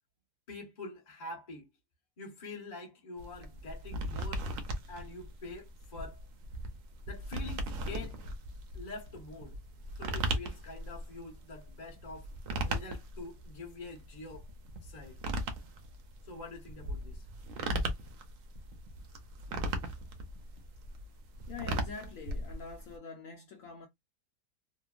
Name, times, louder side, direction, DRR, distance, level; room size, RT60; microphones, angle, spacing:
voice 1, 0.5-1.7 2.2-4.5 4.9-6.2 7.0-8.2 8.7-9.6 10.0-12.3 12.6-14.5 14.8-15.2 16.2-17.3, left 3 dB, 35° left, 0.8 m, -45 dB
sound 1, 3.2-23.0, right 1 dB, 65° right, 0.9 m, -38 dB
voice 2, 21.5-23.9, left 5 dB, 65° left, 0.9 m, -45 dB
2.9 x 2.2 x 2.3 m
omnidirectional pair, 1.6 m